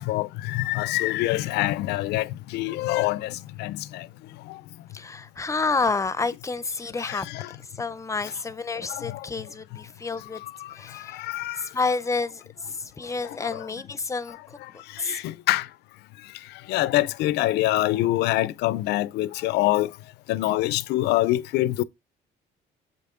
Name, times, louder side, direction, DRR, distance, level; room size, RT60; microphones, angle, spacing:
voice 1, 0.0-2.3 2.5-4.0 7.1-7.5 8.9-9.2 11.3-11.6 13.5-13.6 15.1-15.6 16.7-19.9 20.3-21.8, left 16 dB, 80° left, 0.6 m, -25 dB
voice 2, 4.9-7.4 7.8-10.4 10.7-11.2 11.6-12.4 12.7-14.6 15.0-15.2, left 4 dB, 20° left, 0.7 m, -29 dB
7.9 x 5.8 x 3.7 m
cardioid pair, 110°, 17 cm